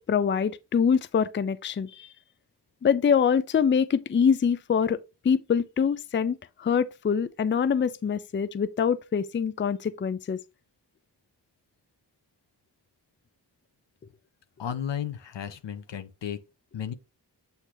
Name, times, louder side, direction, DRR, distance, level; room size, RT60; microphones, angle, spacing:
voice 1, 0.0-2.1 2.8-5.0 5.2-10.4, left 7 dB, 30° left, 0.4 m, -24 dB
voice 2, 14.6-16.4 16.7-16.9, left 9 dB, 90° left, 1.0 m, -33 dB
8.3 x 2.8 x 4.7 m
wide cardioid pair, 105°, 42 cm